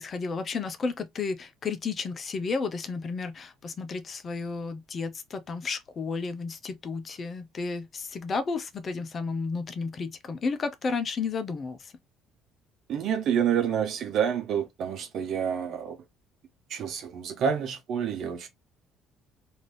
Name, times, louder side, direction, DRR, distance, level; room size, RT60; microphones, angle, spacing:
voice 1, 0.0-11.9, left 4 dB, 40° left, 0.6 m, -32 dB
voice 2, 12.9-16.0 16.7-18.5, right 8 dB, 55° right, 1.0 m, -28 dB
3.7 x 2.7 x 3.2 m
figure-of-eight pair, 50°, 0 cm